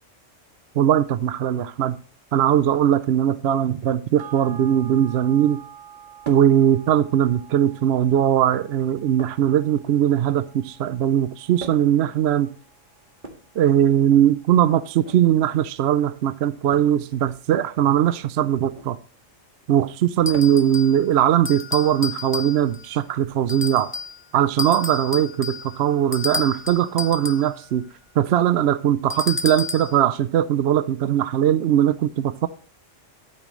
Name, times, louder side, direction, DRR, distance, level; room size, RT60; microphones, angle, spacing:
voice 1, 0.7-2.0 2.3-5.6 6.3-12.5 13.6-19.0 19.7-23.9 24.3-27.8 28.2-32.5, right 10 dB, 65° right, 0.8 m, -20 dB
sound 1, 4.2-12.9 13.3-13.4, right 9 dB, 85° right, 1.3 m, -46 dB
sound 2, 6.2-6.6 7.6-8.1 9.2-10.3 11.6-12.0 13.1-14.2 14.9-15.2 16.7-17.0 18.6-18.9 20.3-20.7 22.2-22.3 23.5-23.6, right 3 dB, 40° right, 2.0 m, -42 dB
sound 3, 20.3-21.0 21.4-22.9 23.5-24.2 24.6-27.5 29.1-30.0, left 4 dB, 20° left, 0.3 m, -31 dB
12.5 x 8.8 x 3.1 m
omnidirectional pair, 1.3 m